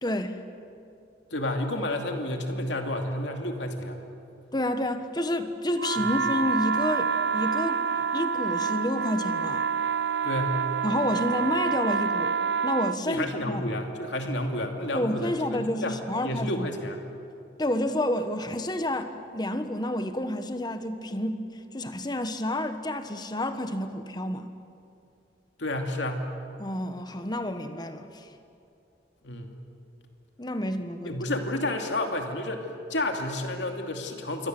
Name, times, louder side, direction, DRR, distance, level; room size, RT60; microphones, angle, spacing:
voice 1, 0.0-0.4 4.5-9.7 10.8-13.7 14.9-16.7 17.6-21.5 21.7-24.5 26.6-28.3 30.4-31.2, left 1 dB, 25° left, 9 dB, 1.3 m, -29 dB
voice 2, 1.3-4.0 6.0-6.1 10.2-10.6 13.1-17.0 25.6-26.3 29.2-29.5 31.0-34.5, left 1 dB, 85° left, 3 dB, 2.6 m, -30 dB
sound 1, 5.8-13.0, right 6 dB, 70° right, 0.6 m, -27 dB
27.0 x 23.0 x 7.9 m, 2.6 s
head